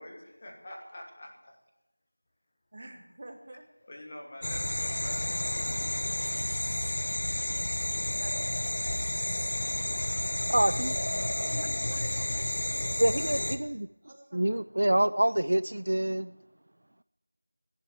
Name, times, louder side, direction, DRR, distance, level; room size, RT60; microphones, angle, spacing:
voice 1, 0.0-1.6 3.9-6.3, left 1 dB, 15° left, 0 dB, 1.3 m, -46 dB
voice 2, 2.7-3.6 8.2-8.7 10.6-14.6, right 1 dB, 20° right, 5 dB, 1.2 m, -50 dB
sound 1, 4.4-13.6, left 1 dB, 40° left, 1.0 m, -31 dB
voice 3, 10.5-10.9 13.0-13.9 14.3-16.3, right 1 dB, 50° right, 15 dB, 0.4 m, -26 dB
12.5 x 11.0 x 8.7 m, 0.93 s
figure-of-eight pair, 180°, 0 cm